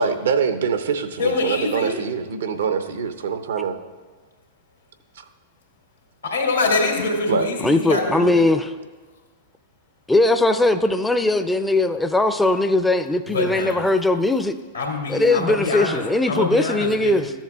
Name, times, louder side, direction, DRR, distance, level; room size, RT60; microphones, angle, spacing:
voice 1, 0.0-3.8 7.3-7.5, right 5 dB, 70° right, 9 dB, 0.6 m, -24 dB
voice 2, 1.2-2.0 6.2-8.5 13.3-13.9 14.7-16.0 16.3-17.3, left 3 dB, 90° left, 0 dB, 2.1 m, -24 dB
voice 3, 7.6-8.7 10.1-14.5 15.1-17.3, left 2 dB, 5° left, 8 dB, 0.4 m, -19 dB
13.5 x 7.2 x 2.4 m, 1.3 s
hypercardioid pair, 100°, 0 cm